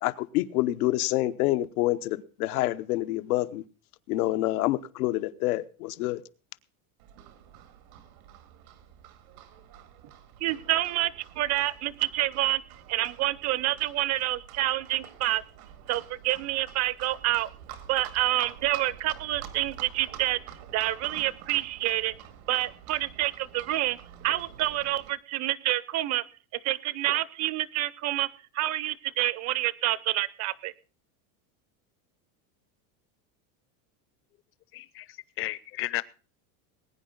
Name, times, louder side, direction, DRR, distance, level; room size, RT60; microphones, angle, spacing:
voice 1, 0.0-3.6 4.1-6.2, left 17 dB, 85° left, 1.0 m, -27 dB
Livestock farm animals working animals, 7.0-25.1, right 10 dB, 85° right, 2.3 m, -47 dB
voice 2, 10.4-12.6 12.9-15.4 15.9-17.5 17.9-20.4 20.7-22.1 22.5-24.0 24.2-26.2 26.5-28.3 28.5-30.7, right 15 dB, 40° right, 0.7 m, -28 dB
voice 3, 34.7-36.0, left 16 dB, 30° left, 0.6 m, -34 dB
20.5 x 9.5 x 3.8 m
supercardioid pair, 155°, 42 cm